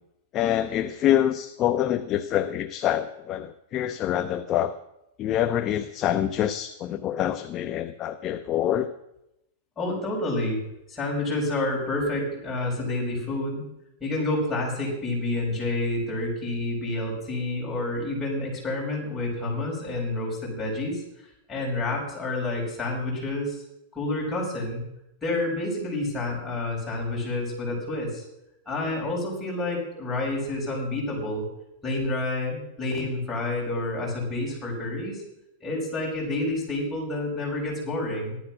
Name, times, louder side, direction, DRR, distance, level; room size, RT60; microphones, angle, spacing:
voice 1, 0.3-4.7 5.2-8.9, left 11 dB, 25° left, 9 dB, 0.6 m, -26 dB
voice 2, 9.8-10.6 10.9-13.6 14.0-21.0 21.5-23.6 23.9-24.8 25.2-28.2 28.7-31.5 31.8-35.2 35.6-38.4, left 2 dB, 10° left, -4 dB, 5.5 m, -29 dB
15.0 x 12.0 x 6.0 m, 0.85 s
supercardioid pair, 165°, 0 cm